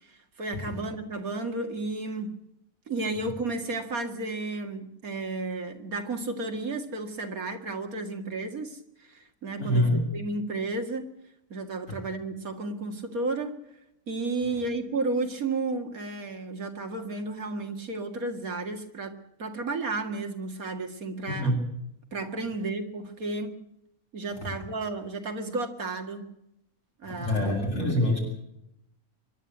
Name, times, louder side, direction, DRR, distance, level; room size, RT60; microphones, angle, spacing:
voice 1, 0.4-2.3 2.9-8.8 9.1-11.0 11.5-13.6 14.1-19.1 19.4-21.6 22.1-23.6 24.1-26.3 27.0-28.1, right 3 dB, 80° right, 5 dB, 2.5 m, -32 dB
voice 2, 9.6-10.0 21.3-21.5 27.0-28.2, left 1 dB, 60° left, -1 dB, 7.9 m, -25 dB
24.5 x 11.5 x 9.2 m, 0.81 s
omnidirectional pair, 1.5 m